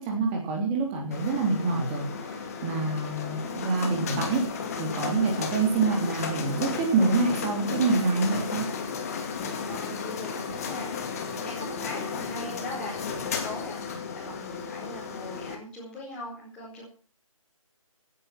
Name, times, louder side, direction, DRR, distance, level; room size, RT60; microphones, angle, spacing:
voice 1, 0.0-8.6, right 3 dB, 15° right, 1 dB, 3.4 m, -26 dB
sound 1, 1.1-15.5, left 5 dB, 25° left, 2.3 m, -34 dB
voice 2, 9.6-16.8, left 1 dB, 5° left, -9 dB, 4.6 m, -40 dB
16.5 x 9.8 x 6.0 m, 0.39 s
figure-of-eight pair, 155°, 18 cm